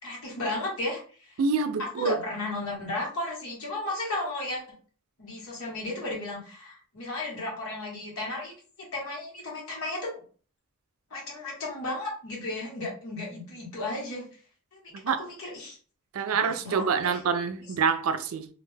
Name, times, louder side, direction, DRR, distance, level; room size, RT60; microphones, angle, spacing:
voice 1, 0.0-1.4 1.8-4.8 5.2-10.2 11.1-14.2 14.7-14.8 15.1-15.8 16.2-17.2, left 2 dB, 75° left, 1.3 m, -34 dB
voice 2, 1.4-2.2 15.0-15.2 16.1-18.5, right 5 dB, 75° right, 0.4 m, -26 dB
2.6 x 2.1 x 3.2 m
head